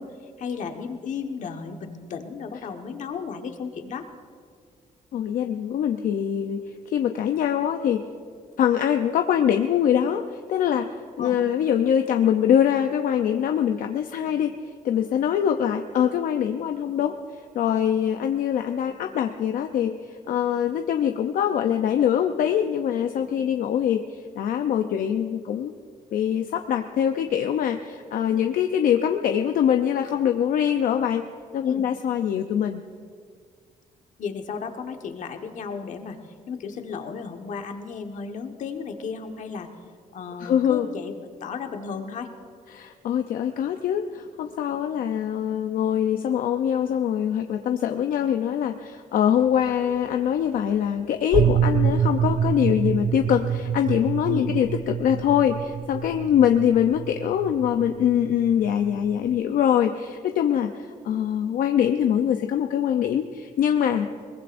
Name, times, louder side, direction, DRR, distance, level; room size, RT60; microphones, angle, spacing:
voice 1, 0.0-4.1 11.2-11.3 31.6-31.8 34.2-36.2 36.5-39.7 40.1-41.1 41.4-42.3 54.3-54.5 64.0-64.1, left 5 dB, 60° left, 4 dB, 1.4 m, -34 dB
voice 2, 5.1-6.6 6.9-8.0 8.6-25.7 26.1-31.2 31.5-32.8 40.4-40.9 42.7-64.1, left 9 dB, 80° left, 6 dB, 0.6 m, -23 dB
sound 1, 51.3-59.4, right 8 dB, 45° right, 0.5 m, -26 dB
22.0 x 20.0 x 2.6 m, 2.1 s
cardioid pair, 115°, 14 cm